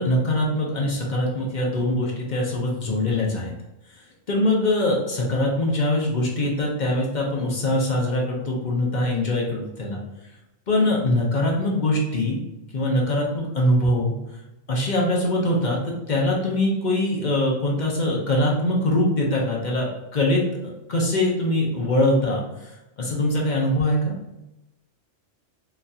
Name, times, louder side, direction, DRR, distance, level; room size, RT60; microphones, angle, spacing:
voice 1, 0.0-3.5 4.3-10.0 10.7-12.4 12.7-14.1 14.7-22.7 23.0-24.1, left 1 dB, 45° left, -2 dB, 0.7 m, -23 dB
3.9 x 2.4 x 2.7 m, 0.95 s
omnidirectional pair, 1.3 m